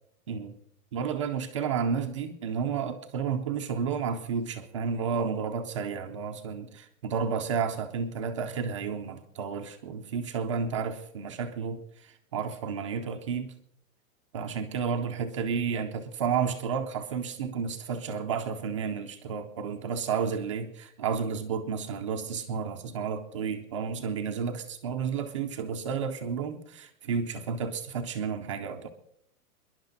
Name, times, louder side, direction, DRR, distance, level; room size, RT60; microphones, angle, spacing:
voice 1, 0.9-13.5 14.3-28.9, right 6 dB, 25° right, 3 dB, 0.5 m, -31 dB
26.0 x 11.0 x 4.0 m, 0.73 s
supercardioid pair, 165°, 44 cm